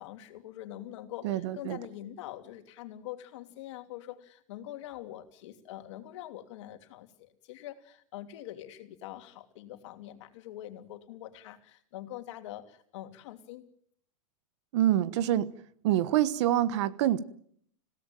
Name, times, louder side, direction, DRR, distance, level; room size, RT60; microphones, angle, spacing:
voice 1, 0.0-13.6, left 13 dB, 60° left, 3.0 m, -44 dB
voice 2, 1.2-1.8 14.7-15.5 15.8-17.2, right 12 dB, 55° right, 1.3 m, -26 dB
26.5 x 17.0 x 9.1 m
supercardioid pair, 160°, 17 cm